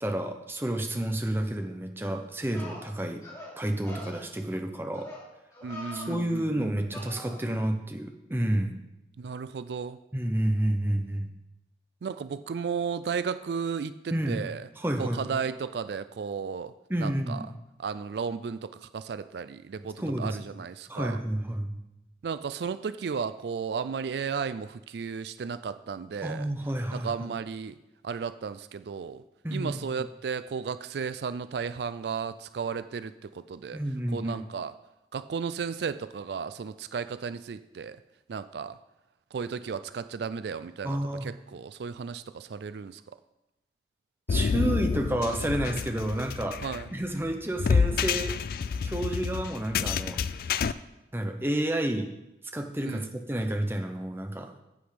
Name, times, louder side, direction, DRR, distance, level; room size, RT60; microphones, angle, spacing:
voice 1, 0.0-3.2 3.6-5.1 5.9-8.7 10.1-11.3 14.1-14.4 14.8-15.4 16.9-17.5 20.0-20.5 20.9-21.8 26.2-27.3 29.4-29.8 33.7-34.4 40.8-41.3 44.3-46.6 46.9-48.3 48.8-50.6 51.1-52.1 52.5-54.5, right 1 dB, 15° right, 5 dB, 0.7 m, -30 dB
sound 1, 2.5-2.8 3.2-3.5 3.8-4.2 4.9-5.3 5.5-6.2 6.9-7.4, left 1 dB, 20° left, 3.1 m, -43 dB
voice 2, 5.6-6.7 9.2-10.0 12.0-14.6 15.0-16.7 17.0-17.4 17.8-21.2 22.2-26.5 26.9-27.7 28.0-29.2 29.5-33.8 34.1-34.7 35.1-38.0 38.3-38.8 39.3-43.0 46.6-46.9 52.8-53.1, right 6 dB, 75° right, 13 dB, 0.4 m, -34 dB
sound 2, 44.3-50.7, left 5 dB, 55° left, 0.3 m, -28 dB
8.3 x 8.0 x 5.1 m, 0.93 s
head